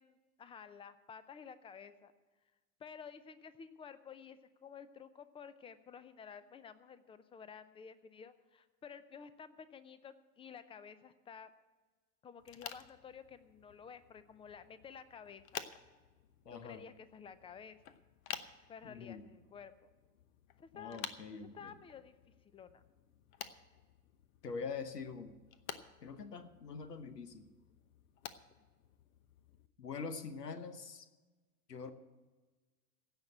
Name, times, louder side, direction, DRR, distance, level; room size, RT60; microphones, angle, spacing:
voice 1, 0.0-2.1 2.8-11.5 12.2-15.7 16.5-18.0 18.7-19.9 20.6-21.0 21.3-22.1 22.5-22.8, left 7 dB, 10° left, 14 dB, 0.5 m, -52 dB
sound 1, 12.4-29.7, left 9 dB, 60° left, 1.0 m, -52 dB
voice 2, 16.4-16.8 18.8-19.2 20.7-21.7 24.4-25.4 26.0-27.5 29.8-31.1 31.7-31.9, left 5 dB, 85° left, 11 dB, 1.2 m, -44 dB
16.0 x 5.9 x 8.8 m, 1.2 s
hypercardioid pair, 95°, 47 cm